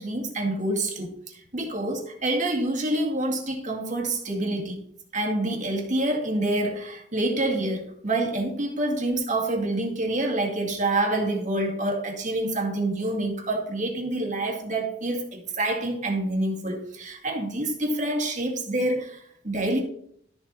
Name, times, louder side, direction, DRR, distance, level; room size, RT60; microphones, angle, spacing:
voice 1, 0.0-4.8 5.1-19.8, right 1 dB, 40° right, 1 dB, 2.1 m, -27 dB
12.5 x 7.1 x 4.1 m, 0.68 s
head